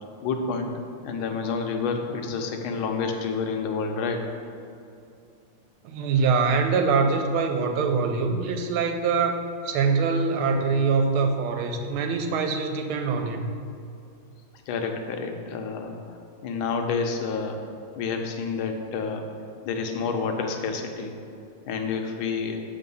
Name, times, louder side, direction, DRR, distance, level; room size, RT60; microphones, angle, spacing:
voice 1, 0.2-4.3 14.7-16.2 16.4-17.6 18.0-19.3 19.6-21.1 21.7-22.6, left 5 dB, 85° left, 4 dB, 1.5 m, -29 dB
voice 2, 5.8-13.5, right 4 dB, 85° right, 5 dB, 1.5 m, -24 dB
7.0 x 3.6 x 5.4 m, 2.5 s
omnidirectional pair, 2.3 m